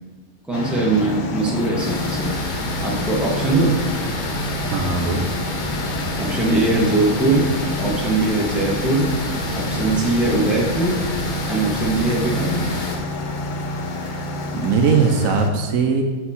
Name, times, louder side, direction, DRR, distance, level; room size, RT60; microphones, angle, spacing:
sound 1, 0.5-15.5, left 1 dB, 65° left, 0.4 m, -29 dB
voice 1, 0.5-2.4 2.8-3.8 6.2-7.5 7.8-9.1 9.5-11.0 11.5-12.8, right 2 dB, ahead, -3 dB, 0.9 m, -21 dB
sound 2, 1.8-13.0, left 2 dB, 40° left, 0.7 m, -29 dB
voice 2, 4.7-5.3 14.0-14.2 14.5-16.0, right 5 dB, 75° right, 4 dB, 1.0 m, -20 dB
6.6 x 4.5 x 4.2 m, 1.3 s
omnidirectional pair, 1.5 m